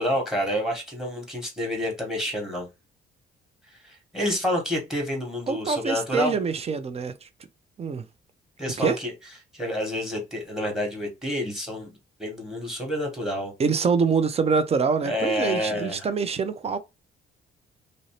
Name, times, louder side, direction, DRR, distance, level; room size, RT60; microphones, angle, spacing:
voice 1, 0.0-2.7 3.8-6.3 8.6-9.1 9.5-13.5 15.0-16.1, equal, ahead, 1.1 m, -28 dB
voice 2, 5.5-7.3 7.8-8.1 8.8-9.0 13.6-16.8, right 5 dB, 30° right, 0.4 m, -25 dB
2.5 x 2.0 x 2.9 m
cardioid pair, 90°, 20 cm